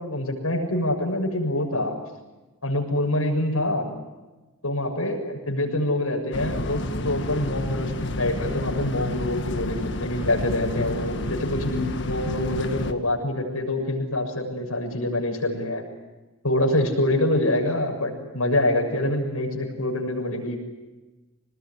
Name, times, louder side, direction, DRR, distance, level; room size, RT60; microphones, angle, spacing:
voice 1, 0.0-2.0 2.6-3.9 4.6-15.8 16.4-20.6, left 1 dB, 75° left, 2 dB, 6.8 m, -25 dB
sound 1, 6.3-12.9, left 1 dB, 50° left, 1.6 m, -30 dB
27.0 x 20.0 x 9.8 m, 1.2 s
head